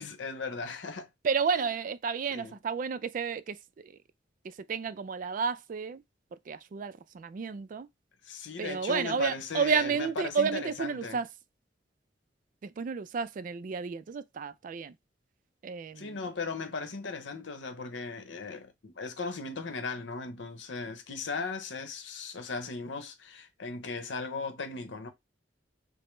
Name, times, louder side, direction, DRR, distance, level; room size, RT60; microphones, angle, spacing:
voice 1, 0.0-1.1 1.5-1.7 2.3-2.5 8.2-11.2 16.0-25.1, left 4 dB, 85° left, 0.8 m, -37 dB
voice 2, 1.2-3.9 4.4-6.0 6.5-7.9 8.6-11.3 12.6-14.9 15.6-16.2, right 6 dB, 45° right, 0.3 m, -31 dB
5.0 x 2.0 x 3.1 m
head